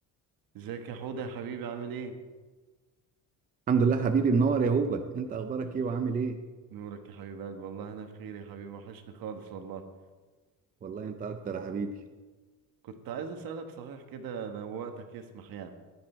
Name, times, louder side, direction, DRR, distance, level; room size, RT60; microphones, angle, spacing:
voice 1, 0.5-2.1 6.7-9.8 12.8-15.7, right 6 dB, 60° right, 6 dB, 1.5 m, -39 dB
voice 2, 3.7-6.4 10.8-11.9, right 5 dB, 20° right, 7 dB, 0.5 m, -27 dB
15.5 x 10.5 x 4.4 m, 1.3 s
cardioid pair, 180°, 39 cm